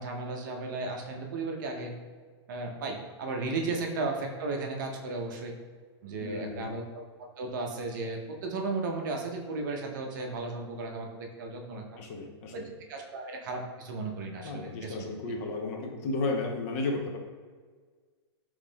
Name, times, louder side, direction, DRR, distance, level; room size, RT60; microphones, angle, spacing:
voice 1, 0.0-1.9 2.5-5.6 6.0-6.8 7.4-12.0 12.5-12.6 12.9-15.0, right 3 dB, 45° right, 2 dB, 0.6 m, -35 dB
voice 2, 6.2-6.7 12.0-12.6 14.4-17.2, left 3 dB, 30° left, 2 dB, 0.4 m, -33 dB
3.6 x 3.1 x 3.8 m, 1.5 s
hypercardioid pair, 165°, 14 cm